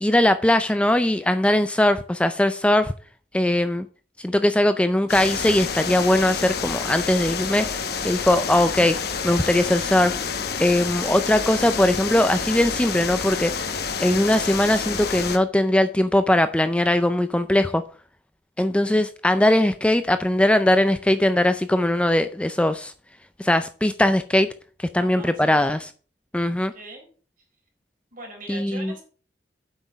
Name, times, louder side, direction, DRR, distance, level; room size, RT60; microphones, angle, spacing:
voice 1, 0.0-2.9 3.3-3.9 4.2-7.7 8.0-8.9 9.2-10.2 10.6-13.7 14.0-17.8 18.6-22.9 23.4-24.5 24.8-25.9 26.3-26.7 28.5-28.9, left 1 dB, 5° left, 10 dB, 0.4 m, -20 dB
sound 1, 5.1-15.4, left 5 dB, 60° left, 1.1 m, -28 dB
voice 2, 25.0-25.5 26.7-27.1 28.1-29.0, right 2 dB, 50° right, -1 dB, 4.3 m, -40 dB
8.1 x 5.9 x 6.2 m, 0.41 s
head